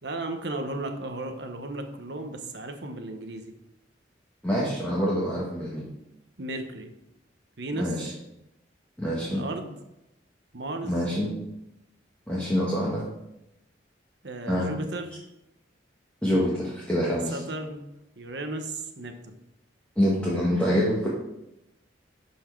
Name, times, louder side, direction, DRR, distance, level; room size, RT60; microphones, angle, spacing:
voice 1, 0.0-3.5 6.4-6.9 7.6-7.9 9.2-9.8 10.5-11.0 14.2-15.2 17.3-17.8 18.2-19.3, right 2 dB, 60° right, 6 dB, 1.1 m, -35 dB
voice 2, 4.4-5.9 7.8-8.1 9.0-9.4 10.8-11.3 12.3-13.1 14.5-14.8 16.2-17.4 20.0-21.1, equal, 10° left, -7 dB, 1.5 m, -26 dB
11.5 x 4.6 x 4.6 m, 0.89 s
head